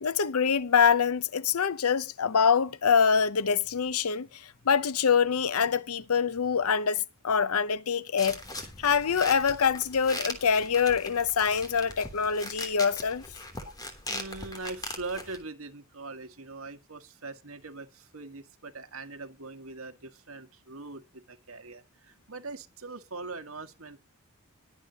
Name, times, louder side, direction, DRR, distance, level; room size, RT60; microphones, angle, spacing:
voice 1, 0.0-13.2, left 6 dB, 90° left, 0.7 m, -25 dB
sound 1, 8.2-15.4, left 2 dB, 20° left, 3.2 m, -40 dB
voice 2, 14.1-24.0, right 3 dB, 70° right, 1.7 m, -41 dB
21.5 x 8.1 x 2.9 m
head